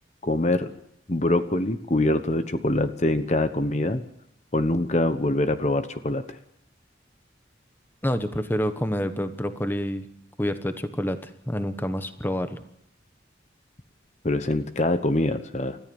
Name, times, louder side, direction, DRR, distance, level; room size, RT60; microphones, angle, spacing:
voice 1, 0.2-0.7 1.1-4.0 4.5-6.2 14.2-15.8, left 1 dB, 40° left, 10 dB, 1.0 m, -24 dB
voice 2, 8.0-10.0 10.4-12.6, equal, 10° left, 9 dB, 1.1 m, -28 dB
29.5 x 14.0 x 7.1 m, 0.74 s
head